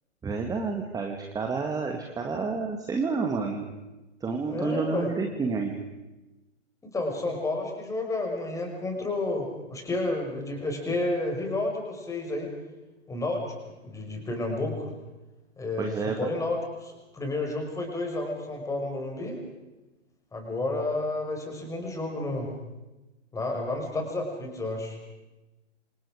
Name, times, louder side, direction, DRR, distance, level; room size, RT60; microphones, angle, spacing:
voice 1, 0.2-3.7 4.2-5.8 15.8-16.2, right 4 dB, 10° right, 3 dB, 2.0 m, -29 dB
voice 2, 4.5-5.1 6.8-12.5 13.1-14.9 15.6-19.4 20.3-22.5 23.3-25.0, left 2 dB, 10° left, 2 dB, 5.7 m, -31 dB
28.5 x 27.0 x 5.1 m, 1.1 s
figure-of-eight pair, 125°, 37 cm